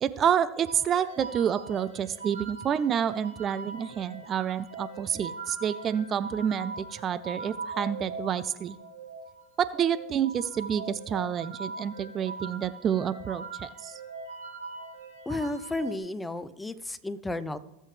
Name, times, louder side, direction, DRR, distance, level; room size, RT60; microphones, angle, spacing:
voice 1, 0.0-8.8 9.6-14.0, right 8 dB, 35° right, 15 dB, 0.4 m, -28 dB
sound 1, 0.6-16.0, right 4 dB, 90° right, 5.1 m, -41 dB
voice 2, 15.3-17.6, left 2 dB, 10° left, 14 dB, 0.6 m, -33 dB
18.5 x 7.7 x 3.3 m, 0.89 s
hypercardioid pair, 110°, 0 cm